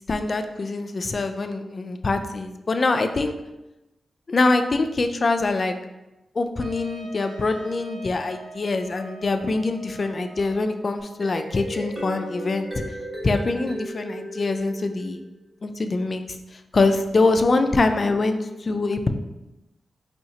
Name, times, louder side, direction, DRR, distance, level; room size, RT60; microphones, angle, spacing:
voice 1, 0.1-3.3 4.3-5.7 6.3-12.8 13.2-15.2 15.6-19.1, left 3 dB, 45° left, 7 dB, 0.3 m, -24 dB
Trumpet, 6.6-11.4, right 3 dB, 65° right, 0.4 m, -43 dB
sound 1, 11.0-15.3, equal, 20° right, 1.1 m, -35 dB
4.2 x 2.8 x 2.8 m, 0.98 s
wide cardioid pair, 95°, 0 cm